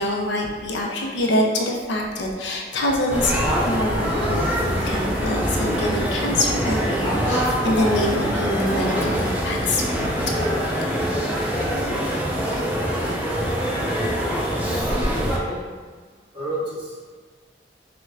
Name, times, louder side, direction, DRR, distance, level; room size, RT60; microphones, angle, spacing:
voice 1, 0.0-10.3, left 1 dB, 85° left, 0 dB, 0.5 m, -25 dB
sound 1, 3.1-15.4, equal, 10° right, 0.5 m, -24 dB
voice 2, 14.3-15.6 16.3-16.9, right 1 dB, 25° right, -9 dB, 1.2 m, -32 dB
5.3 x 2.2 x 2.4 m, 1.5 s
head